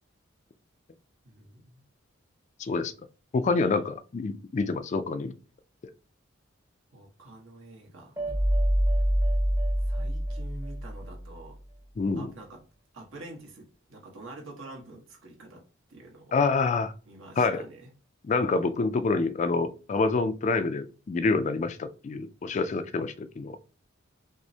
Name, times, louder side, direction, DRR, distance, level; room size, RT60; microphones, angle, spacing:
voice 1, 1.2-1.8 6.9-8.1 9.8-11.6 12.2-12.6 12.9-15.6 15.9-16.3 17.1-17.9, right 2 dB, 70° right, 1.2 m, -46 dB
voice 2, 2.6-2.9 3.3-5.3 12.0-12.3 16.3-16.9 17.4-17.6 18.2-23.6, left 4 dB, 35° left, 0.3 m, -27 dB
sound 1, 8.2-11.3, equal, 15° right, 0.7 m, -26 dB
6.0 x 2.1 x 2.7 m
head